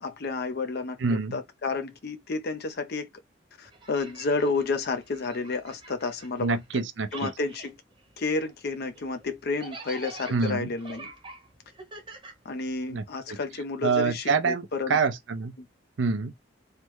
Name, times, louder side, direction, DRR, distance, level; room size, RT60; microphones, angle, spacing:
voice 1, 0.0-3.1 3.6-6.8 7.1-7.8 8.2-11.1 12.4-15.0 15.6-15.7, left 3 dB, 55° left, 0.6 m, -31 dB
voice 2, 1.0-1.4 6.4-7.3 10.3-10.7 12.9-13.4 13.8-15.5 16.0-16.3, right 4 dB, 70° right, 0.5 m, -26 dB
sound 1, 3.6-6.8 7.0-13.0, right 3 dB, 30° right, 0.9 m, -46 dB
3.2 x 2.1 x 3.0 m
head